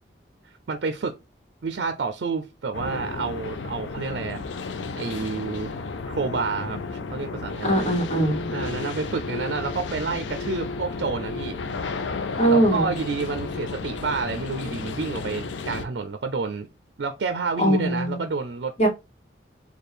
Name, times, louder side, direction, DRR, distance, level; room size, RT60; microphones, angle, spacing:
voice 1, 0.4-1.2 1.6-4.4 4.9-5.7 6.1-8.0 8.5-11.6 12.5-16.7 17.0-18.7, right 4 dB, 70° right, 0.4 m, -29 dB
sound 1, 2.7-15.9, left 4 dB, 85° left, 0.5 m, -33 dB
voice 2, 7.6-8.5 12.4-12.9 17.6-18.2 18.8-18.9, right 1 dB, 35° left, 1.4 m, -21 dB
4.4 x 2.3 x 3.3 m
head